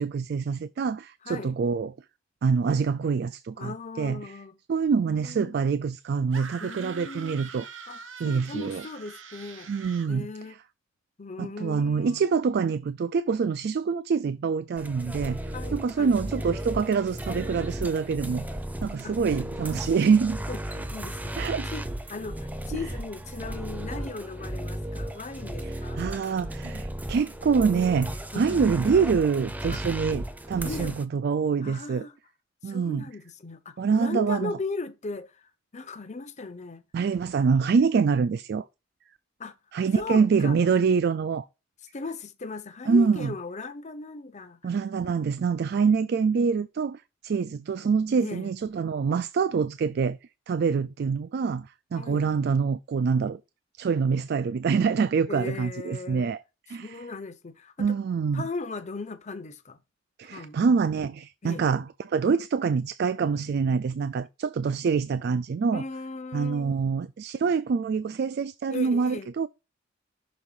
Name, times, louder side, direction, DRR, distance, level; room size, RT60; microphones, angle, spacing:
voice 1, 0.0-2.0 2.4-4.3 4.7-7.7 8.2-8.8 9.7-10.3 11.4-15.4 15.7-18.5 18.8-20.4 21.4-21.7 22.7-22.8 26.0-32.0 32.6-33.0 33.8-34.5 36.9-38.6 39.7-41.5 42.9-43.3 44.6-50.2 50.5-53.4 53.8-56.4 56.7-56.9 57.8-58.4 60.2-65.8 66.3-69.5, right 5 dB, 55° right, 0.3 m, -25 dB
voice 2, 1.2-1.6 3.6-4.5 5.1-5.6 6.6-7.4 7.9-9.7 10.1-10.6 11.2-12.2 15.5-16.2 19.0-19.2 20.5-21.3 21.6-26.0 28.3-28.7 29.7-29.8 30.6-31.0 31.6-32.2 32.6-36.8 39.4-39.6 39.9-40.6 41.9-44.6 48.2-48.5 51.9-52.3 55.3-56.3 56.7-58.0 58.3-59.8 60.2-60.6 61.4-61.7 65.7-66.8 68.7-69.3, left 3 dB, 40° left, 0.7 m, -38 dB
sound 1, 6.3-10.2, right 6 dB, 85° right, 0.9 m, -43 dB
sound 2, 14.8-31.0, right 1 dB, 10° right, 0.6 m, -35 dB
6.3 x 3.6 x 5.4 m
head